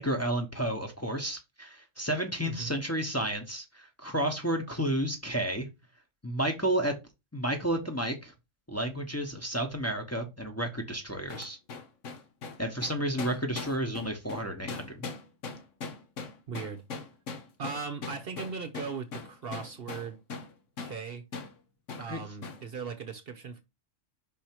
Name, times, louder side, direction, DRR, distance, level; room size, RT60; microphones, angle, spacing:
voice 1, 0.0-5.7 6.2-6.9 7.3-8.3 8.7-11.6 12.6-15.0 22.1-22.2, right 1 dB, 15° left, 1.1 m, -31 dB
sound 1, 11.3-20.5 20.8-21.0 21.3-21.5 21.9-22.1 22.4-22.6, left 4 dB, 75° left, 1.4 m, -40 dB
voice 2, 16.5-16.8 17.6-20.2 20.8-21.3 22.0-23.6, right 5 dB, 55° right, 0.9 m, -38 dB
5.5 x 4.4 x 4.5 m
omnidirectional pair, 1.3 m